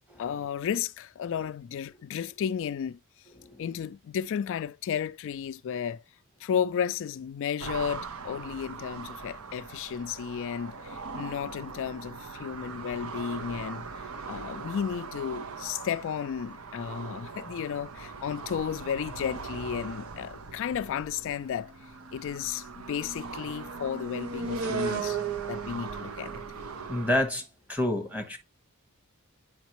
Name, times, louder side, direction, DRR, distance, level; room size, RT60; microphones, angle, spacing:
voice 1, 0.2-3.0 3.6-6.0 6.4-25.2 25.5-26.4, left 8 dB, 60° left, 0.3 m, -33 dB
voice 2, 3.3-3.7 26.9-28.4, left 1 dB, 5° right, 1.2 m, -29 dB
sound 1, 7.6-27.3, right 5 dB, 65° right, 0.8 m, -38 dB
8.0 x 5.1 x 3.0 m
head